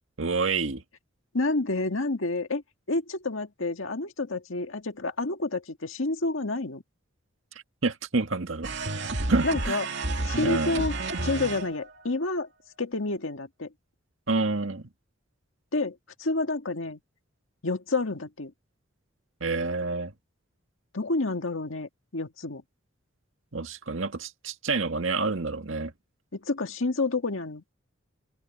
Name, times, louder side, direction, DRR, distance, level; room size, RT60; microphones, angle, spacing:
voice 1, 0.2-0.8 7.8-8.7 9.3-9.8 10.4-10.8 14.3-14.8 19.4-20.1 23.5-25.9, right 3 dB, 75° right, 1.7 m, -28 dB
voice 2, 1.3-2.6 2.9-6.8 9.4-9.9 10.2-12.5 12.8-13.7 15.7-17.0 17.6-18.5 20.9-22.6 26.3-27.6, left 2 dB, 80° left, 1.8 m, -29 dB
sound 1, 8.6-12.0, right 2 dB, 60° right, 2.4 m, -31 dB
open air
head